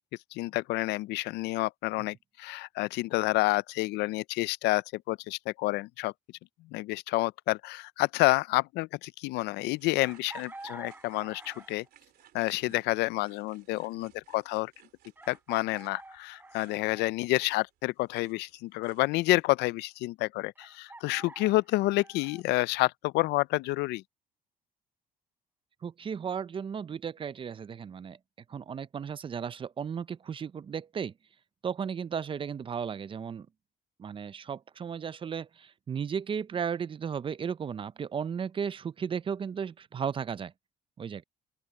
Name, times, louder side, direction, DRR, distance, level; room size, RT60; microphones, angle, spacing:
voice 1, 0.3-6.1 6.7-11.8 12.3-14.7 15.3-24.0, left 20 dB, 85° left, 0.4 m, -29 dB
sound 1, 9.7-19.5, right 12 dB, 65° right, 2.9 m, -61 dB
Chicken rooster, 10.0-11.9 13.6-13.7 15.2-17.1 20.6-22.4, right 2 dB, 10° right, 3.7 m, -48 dB
voice 2, 25.8-28.2 28.5-31.1 31.6-33.5 34.0-40.5 41.0-41.2, right 7 dB, 30° right, 0.5 m, -35 dB
open air
cardioid pair, 110°, 17 cm